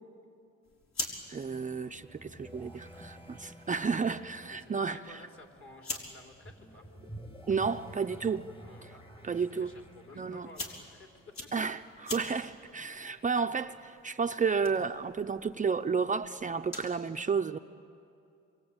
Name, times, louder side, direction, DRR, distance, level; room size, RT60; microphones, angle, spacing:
sound 1, 0.6-17.0, left 3 dB, 65° left, 4.6 m, -47 dB
sound 2, 1.2-12.0, right 1 dB, 15° left, 1.6 m, -51 dB
voice 1, 1.3-5.2 7.5-8.5 8.8-8.9 9.2-9.7 10.2-10.5 11.5-17.6, right 5 dB, 25° right, 7 dB, 0.6 m, -32 dB
voice 2, 4.5-6.8 8.6-11.1 11.4-11.5, left 2 dB, 45° left, 2 dB, 3.9 m, -54 dB
27.0 x 23.0 x 8.8 m, 2.5 s
cardioid pair, 90°, 30 cm